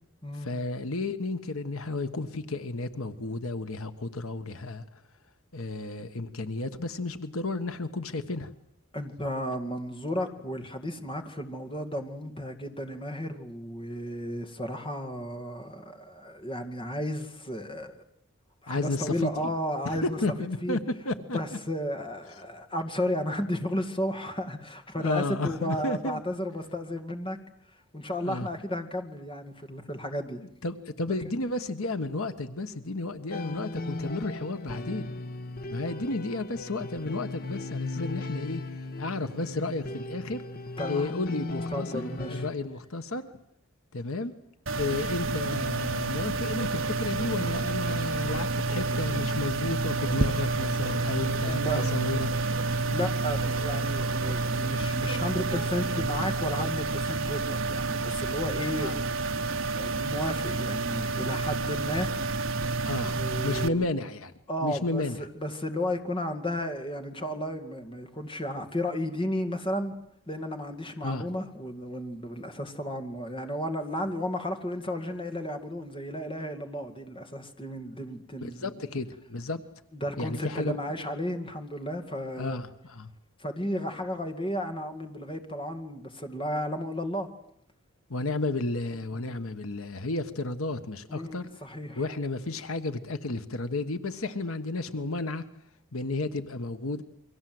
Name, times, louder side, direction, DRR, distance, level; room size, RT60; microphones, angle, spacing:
voice 1, 0.4-4.8 5.5-8.5 18.7-19.5 19.8-20.8 21.0-21.4 25.0-26.2 28.2-28.5 30.6-35.1 35.7-40.4 40.9-42.1 42.4-43.3 43.9-44.3 44.7-52.3 58.8-59.0 62.8-63.2 63.4-64.3 64.6-65.2 71.0-71.3 78.6-79.6 80.2-81.1 82.4-83.1 88.1-91.5 92.0-95.4 95.9-97.0, left 2 dB, 75° left, 10 dB, 1.4 m, -32 dB
voice 2, 8.9-18.0 18.6-20.2 20.6-20.8 21.3-27.4 27.9-30.4 40.8-41.1 41.7-42.4 51.3-51.9 52.7-59.0 59.6-62.1 63.0-63.8 64.5-70.0 70.3-78.7 79.9-82.6 83.4-87.3 89.1-89.4 91.1-92.0, equal, 25° left, 5 dB, 2.3 m, -33 dB
sound 1, 33.3-42.5, left 2 dB, 45° left, 1.3 m, -37 dB
sound 2, 44.7-63.7, right 3 dB, 60° right, 1.1 m, -29 dB
sound 3, 46.2-56.8, right 1 dB, 25° right, 4.0 m, -45 dB
29.0 x 23.5 x 7.9 m, 0.76 s
head